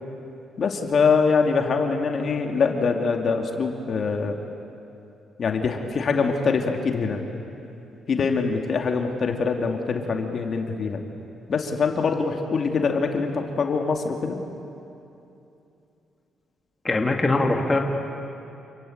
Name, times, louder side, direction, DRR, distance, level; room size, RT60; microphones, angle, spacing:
voice 1, 0.6-4.4 5.4-7.2 8.1-11.0 11.5-14.4, left 5 dB, 50° left, 3 dB, 2.6 m, -24 dB
voice 2, 16.8-17.8, left 2 dB, 20° left, 2 dB, 2.3 m, -21 dB
29.0 x 21.5 x 8.8 m, 2.8 s
cardioid pair, 90°, 0 cm